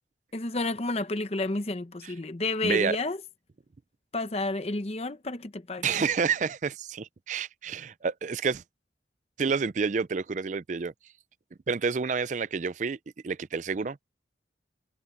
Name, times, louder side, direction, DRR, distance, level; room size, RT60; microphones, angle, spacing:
voice 1, 0.3-3.2 4.1-5.9, left 2 dB, 35° left, 0.8 m, -30 dB
voice 2, 2.6-3.0 5.8-8.6 9.4-10.9 11.7-13.0 13.2-14.0, right 5 dB, 40° right, 0.4 m, -29 dB
head